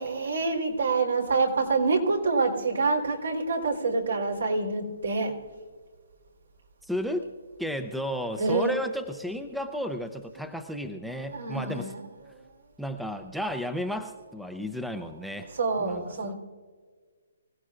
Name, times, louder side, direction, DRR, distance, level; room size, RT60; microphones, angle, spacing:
voice 1, 0.0-5.4 8.4-8.7 11.3-12.0 12.3-12.4 15.5-16.3, right 3 dB, 80° right, 1 dB, 3.6 m, -26 dB
voice 2, 6.9-11.9 12.8-15.5 15.8-16.3, equal, ahead, 7 dB, 0.6 m, -33 dB
24.5 x 16.5 x 2.5 m, 1.5 s
hypercardioid pair, 155°, 0 cm